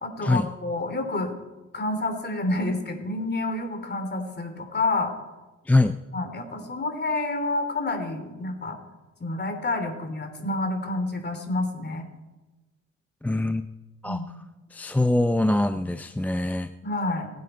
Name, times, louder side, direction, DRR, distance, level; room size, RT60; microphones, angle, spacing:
voice 1, 0.0-1.3 1.7-5.1 6.1-8.8 9.2-12.0 14.0-14.4 16.8-17.3, left 2 dB, 35° left, 5 dB, 3.2 m, -29 dB
voice 2, 5.7-6.0 13.2-13.7 14.0-14.2 14.7-16.7, left 2 dB, 5° left, 10 dB, 0.4 m, -23 dB
26.0 x 9.4 x 4.4 m, 1.1 s
cardioid pair, 90°, 30 cm